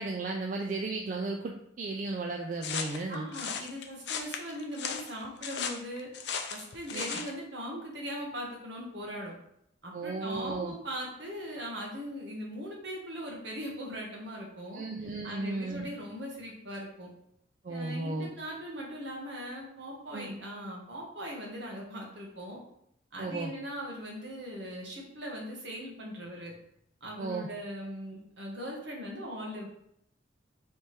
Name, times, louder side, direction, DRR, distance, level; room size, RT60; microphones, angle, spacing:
voice 1, 0.0-3.3 6.9-7.1 9.9-10.7 14.7-15.9 17.6-18.3 20.1-20.4 23.2-23.5 27.2-27.5, right 3 dB, 40° right, 1 dB, 0.3 m, -35 dB
sound 1, 2.6-7.3, left 6 dB, 60° left, 0.5 m, -36 dB
voice 2, 3.1-6.1 6.5-9.3 9.8-14.8 15.2-17.1 17.7-22.6 23.1-26.5 27.0-29.7, equal, 65° right, -1 dB, 1.2 m, -40 dB
3.4 x 3.2 x 4.3 m, 0.73 s
head